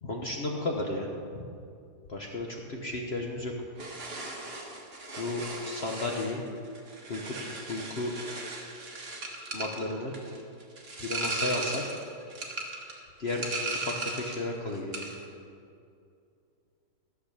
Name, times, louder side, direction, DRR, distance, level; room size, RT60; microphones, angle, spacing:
voice 1, 0.0-1.4 2.1-3.5 5.1-6.4 7.1-7.3 7.7-8.1 9.5-10.1 11.0-11.8 13.2-13.4 13.7-15.0, left 2 dB, 45° left, 0 dB, 1.0 m, -33 dB
sound 1, 3.8-14.5 14.7-15.2, right 2 dB, 35° right, 1.6 m, -37 dB
14.0 x 7.4 x 6.7 m, 2.5 s
omnidirectional pair, 1.9 m